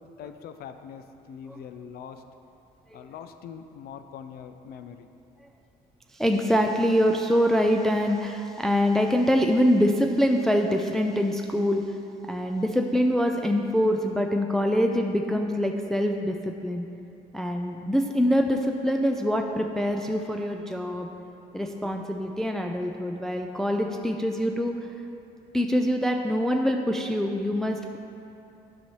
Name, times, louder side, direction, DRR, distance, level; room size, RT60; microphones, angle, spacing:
voice 1, 0.0-2.2 2.9-5.1, left 7 dB, 65° left, 8 dB, 0.5 m, -42 dB
voice 2, 6.1-11.8 12.2-16.9 17.3-21.1 21.5-24.7 25.5-28.0, equal, 5° left, 3 dB, 0.3 m, -24 dB
10.0 x 5.6 x 3.1 m, 2.7 s
cardioid pair, 110°, 17 cm